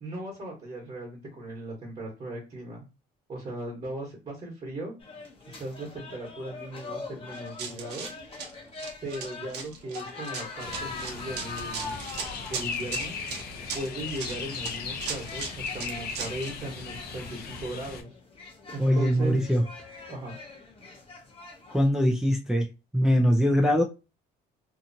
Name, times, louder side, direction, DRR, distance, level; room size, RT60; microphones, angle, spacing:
voice 1, 0.0-2.8 3.3-4.9 5.5-8.1 9.0-11.9 12.5-13.2 13.7-18.1 18.7-19.4 20.1-20.4, right 1 dB, 40° right, 1.2 m, -37 dB
sound 1, 5.0-21.9, left 3 dB, 30° left, 0.8 m, -43 dB
Run, 7.3-16.5, right 5 dB, 85° right, 0.8 m, -38 dB
sound 2, 10.6-18.0, left 5 dB, 65° left, 0.7 m, -37 dB
voice 2, 18.8-19.6 21.7-22.7 22.9-23.8, equal, 5° right, 0.4 m, -22 dB
2.9 x 2.4 x 2.6 m
cardioid pair, 110°, 17 cm